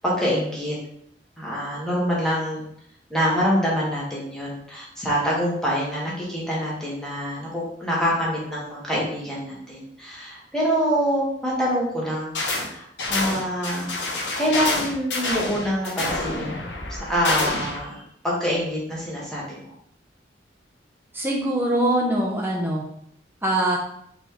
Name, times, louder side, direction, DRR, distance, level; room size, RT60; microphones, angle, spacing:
voice 1, 0.0-0.8 1.4-2.6 3.1-13.9 14.4-16.6 16.9-19.7, equal, 5° left, -6 dB, 1.3 m, -26 dB
sound 1, 12.3-12.7 13.0-17.8, left 2 dB, 80° left, 1.0 m, -27 dB
voice 2, 21.1-22.8 23.4-23.8, right 1 dB, 10° right, -2 dB, 0.6 m, -23 dB
4.2 x 3.4 x 2.9 m, 0.70 s
head